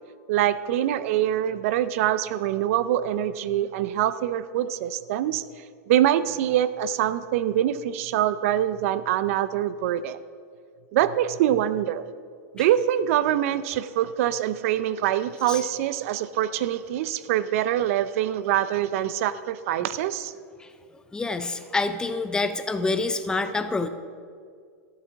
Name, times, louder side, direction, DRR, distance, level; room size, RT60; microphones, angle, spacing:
voice 1, 0.3-5.4 5.9-10.2 10.9-12.0 12.5-20.3, right 11 dB, 55° right, 15 dB, 0.5 m, -24 dB
voice 2, 21.1-23.9, left 3 dB, 10° left, 10 dB, 0.4 m, -27 dB
13.5 x 7.1 x 5.8 m, 2.1 s
supercardioid pair, 145°, 9 cm